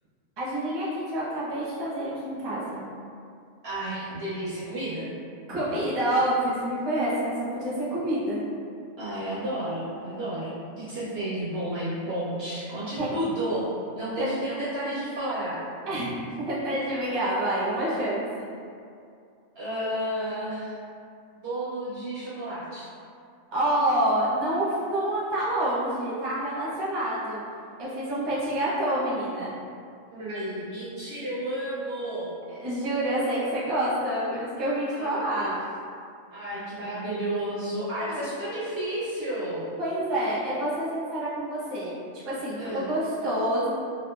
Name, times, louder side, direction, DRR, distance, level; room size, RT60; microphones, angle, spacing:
voice 1, 0.4-2.8 5.5-8.4 13.0-13.1 14.2-14.3 15.9-16.1 16.5-18.5 23.5-27.4 27.8-29.5 32.5-35.6 39.8-41.9 42.2-43.7, right 1 dB, 30° right, -9 dB, 0.5 m, -27 dB
voice 2, 3.6-5.1 9.0-15.6 19.6-20.8 21.4-22.9 30.1-32.3 34.9-35.6 36.3-39.7 42.6-42.9, right 1 dB, 65° right, -9 dB, 0.7 m, -32 dB
2.8 x 2.3 x 2.2 m, 2.4 s
omnidirectional pair, 1.3 m